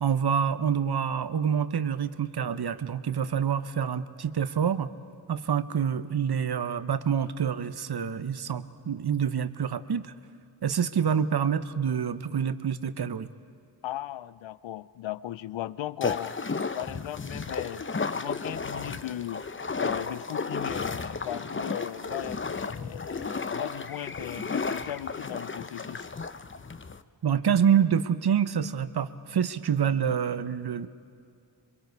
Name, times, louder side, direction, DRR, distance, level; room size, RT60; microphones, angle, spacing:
voice 1, 0.0-4.9 5.3-10.1 10.6-13.3 27.2-30.9, right 8 dB, 60° right, 13 dB, 0.9 m, -27 dB
voice 2, 13.8-16.3 16.7-17.8 18.1-19.4 19.8-26.1, left 13 dB, 85° left, 17 dB, 0.5 m, -37 dB
sound 1, 16.0-27.0, left 4 dB, 25° left, 0.7 m, -33 dB
26.5 x 22.5 x 4.7 m, 2.4 s
cardioid pair, 40°, 44 cm